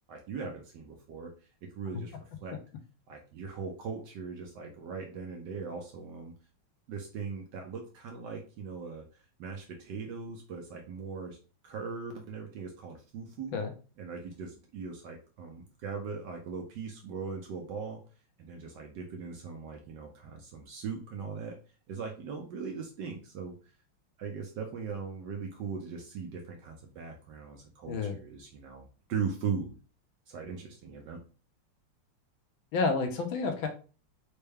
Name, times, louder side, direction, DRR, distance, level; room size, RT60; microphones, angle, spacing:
voice 1, 0.1-2.6 3.1-6.3 6.9-11.4 11.6-13.5 14.0-18.0 18.4-21.6 21.9-23.7 24.2-29.7 30.3-31.2, right 5 dB, 75° right, 2 dB, 1.1 m, -39 dB
voice 2, 32.7-33.7, left 4 dB, 75° left, 5 dB, 1.3 m, -29 dB
4.3 x 2.2 x 3.3 m, 0.36 s
omnidirectional pair, 2.3 m